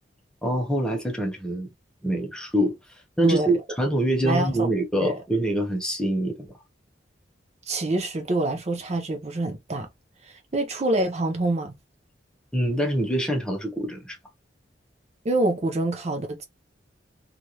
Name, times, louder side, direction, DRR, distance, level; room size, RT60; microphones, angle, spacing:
voice 1, 0.4-1.7 2.0-2.8 3.2-6.5 12.5-14.2, right 1 dB, 5° left, 0.8 m, -25 dB
voice 2, 4.2-4.7 5.0-5.2 7.7-9.9 10.2-11.7 15.2-16.4, right 2 dB, 35° right, 0.6 m, -26 dB
3.1 x 2.5 x 2.7 m
head